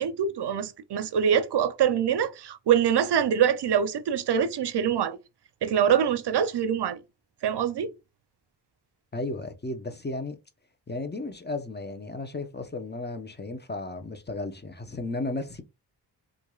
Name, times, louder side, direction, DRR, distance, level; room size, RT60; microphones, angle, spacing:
voice 1, 0.0-5.2 5.6-7.0 7.4-7.9, right 8 dB, 70° right, 0.6 m, -24 dB
voice 2, 9.1-10.4 10.9-15.6, left 2 dB, 25° left, 0.8 m, -34 dB
4.6 x 2.5 x 2.3 m
cardioid pair, 60°, 42 cm